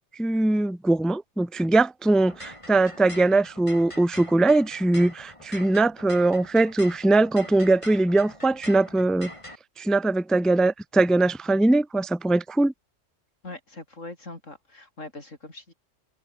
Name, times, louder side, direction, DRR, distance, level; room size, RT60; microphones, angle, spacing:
voice 1, 0.2-9.3 9.8-12.7, right 2 dB, ahead, 0.4 m, -21 dB
sound 1, 2.2-9.6, left 1 dB, 25° left, 7.3 m, -43 dB
voice 2, 13.4-15.7, left 2 dB, 80° left, 5.5 m, -41 dB
omnidirectional pair, 1.3 m